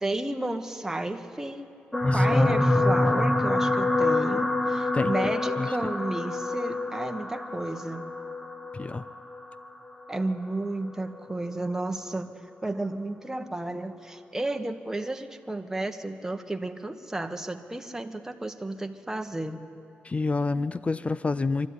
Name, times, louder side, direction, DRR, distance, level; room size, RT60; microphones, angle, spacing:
voice 1, 0.0-1.7 2.1-8.2 10.1-12.3 12.6-19.6, right 2 dB, 10° right, 6 dB, 1.3 m, -32 dB
sound 1, 1.9-10.4 11.1-11.4 11.7-11.8, left 2 dB, 10° left, 1.1 m, -26 dB
voice 2, 2.0-2.6 4.9-5.1 5.6-5.7 8.7-9.0 20.0-21.7, left 3 dB, 30° left, 15 dB, 0.5 m, -28 dB
25.0 x 12.5 x 9.7 m, 2.8 s
cardioid pair, 80°, 4 cm